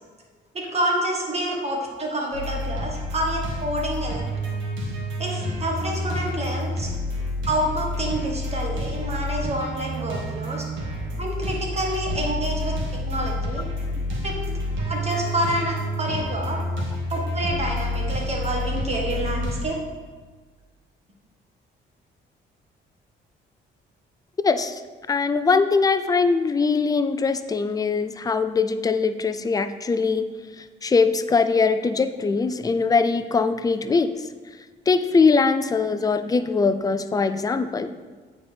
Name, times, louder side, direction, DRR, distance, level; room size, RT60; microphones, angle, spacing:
voice 1, 0.5-4.2 5.2-6.9 7.5-10.7 11.2-12.7 13.0-13.7 14.2-14.5 14.9-16.6 17.1-19.8, right 1 dB, 30° right, 0 dB, 1.6 m, -28 dB
sound 1, 2.3-19.6, left 1 dB, 80° right, 1.6 m, -29 dB
voice 2, 24.4-24.8 25.1-30.3 30.6-34.1 34.9-37.9, left 4 dB, 20° left, 10 dB, 0.4 m, -21 dB
8.7 x 4.2 x 3.4 m, 1.4 s
cardioid pair, 90°, 20 cm